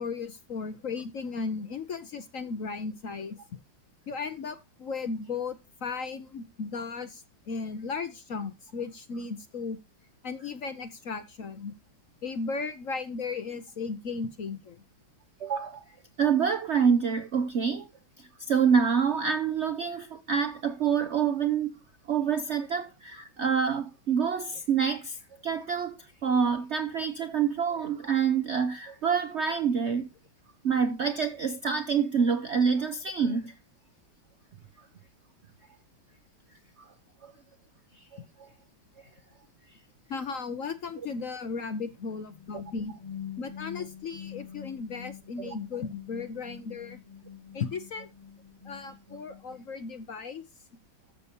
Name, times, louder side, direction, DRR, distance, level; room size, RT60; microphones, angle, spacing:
voice 1, 0.0-3.4 4.1-9.8 10.2-11.7 12.2-14.8 38.2-38.3 40.1-42.9 43.4-47.0 47.5-48.1 48.6-50.4, left 4 dB, 55° left, 1.0 m, -36 dB
voice 2, 15.4-15.8 16.2-17.9 18.2-21.7 22.1-30.1 30.6-33.6 37.2-37.3 45.4-45.5, right 6 dB, 75° right, 0.6 m, -27 dB
sound 1, 42.1-49.9, left 9 dB, 25° left, 1.3 m, -45 dB
13.5 x 6.9 x 2.9 m
omnidirectional pair, 2.2 m